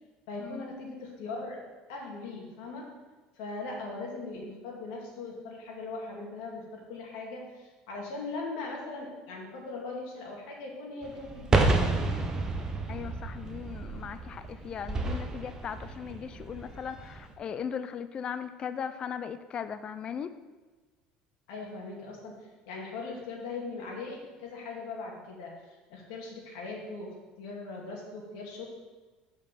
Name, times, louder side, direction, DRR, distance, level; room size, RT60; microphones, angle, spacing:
voice 1, 0.3-1.6 1.9-2.8 3.4-11.9 21.5-27.1 27.4-28.7, left 3 dB, 85° left, -1 dB, 2.2 m, -40 dB
sound 1, 11.0-17.3, right 3 dB, 25° right, 0.9 m, -30 dB
voice 2, 12.8-20.3, left 7 dB, 35° left, 11 dB, 0.4 m, -38 dB
7.2 x 5.2 x 5.7 m, 1.3 s
cardioid pair, 120°, 3 cm